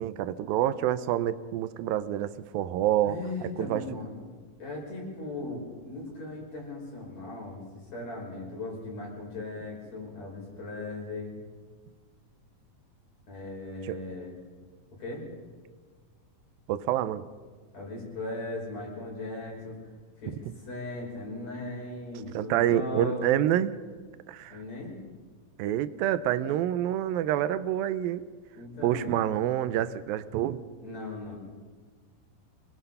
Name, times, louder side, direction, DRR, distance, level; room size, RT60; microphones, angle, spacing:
voice 1, 0.0-3.8 13.8-14.0 16.7-17.2 22.3-23.7 24.3-24.6 25.6-28.3 28.8-30.6, right 12 dB, 90° right, 14 dB, 2.5 m, -27 dB
voice 2, 3.0-4.2 4.6-7.6 7.9-11.4 13.3-14.3 15.0-15.2 17.7-19.8 20.2-23.4 24.5-24.9 28.5-29.4 30.8-31.4, left 2 dB, 50° left, -2 dB, 6.7 m, -38 dB
25.5 x 21.0 x 5.6 m, 1.5 s
omnidirectional pair, 4.0 m